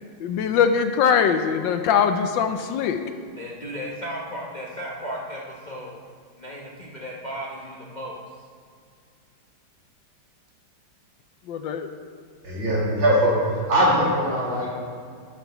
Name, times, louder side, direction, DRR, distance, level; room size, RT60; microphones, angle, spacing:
voice 1, 0.2-3.0 11.5-11.9, left 7 dB, 75° left, 7 dB, 1.2 m, -21 dB
voice 2, 3.3-6.0 6.4-8.2, equal, 40° left, -4 dB, 0.6 m, -35 dB
voice 3, 12.4-14.7, equal, 75° right, -7 dB, 3.2 m, -21 dB
11.0 x 9.2 x 3.0 m, 2.1 s
omnidirectional pair, 2.2 m